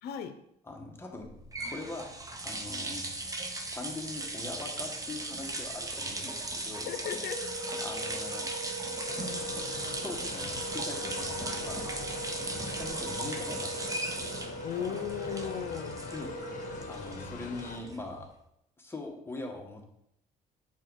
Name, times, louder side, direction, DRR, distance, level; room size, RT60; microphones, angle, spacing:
voice 1, 0.0-0.4 6.8-7.8 14.6-16.0, left 9 dB, 70° left, 9 dB, 0.7 m, -36 dB
voice 2, 0.7-1.4 1.7-2.1 2.4-3.0 3.4-6.9 7.8-8.5 10.0-11.8 12.5-14.1 16.0-18.3 18.8-19.9, left 2 dB, 15° left, 1 dB, 1.3 m, -42 dB
sound 1, 1.2-18.2, right 2 dB, 20° right, 1.0 m, -38 dB
Wind instrument woodwind instrument, 7.2-17.2, right 1 dB, 40° right, 3.0 m, -41 dB
sound 2, 9.1-17.8, left 6 dB, 50° left, 1.0 m, -44 dB
7.1 x 4.7 x 4.7 m, 0.77 s
cardioid pair, 110°, 17 cm